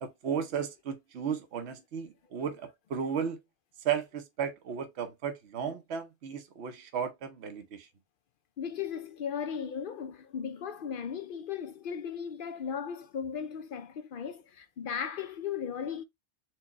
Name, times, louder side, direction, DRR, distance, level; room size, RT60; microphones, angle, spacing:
voice 1, 0.0-3.4 3.8-7.9, right 7 dB, 70° right, 1.0 m, -34 dB
voice 2, 8.6-16.0, left 7 dB, 60° left, 0.6 m, -36 dB
4.4 x 2.2 x 4.1 m
omnidirectional pair, 1.2 m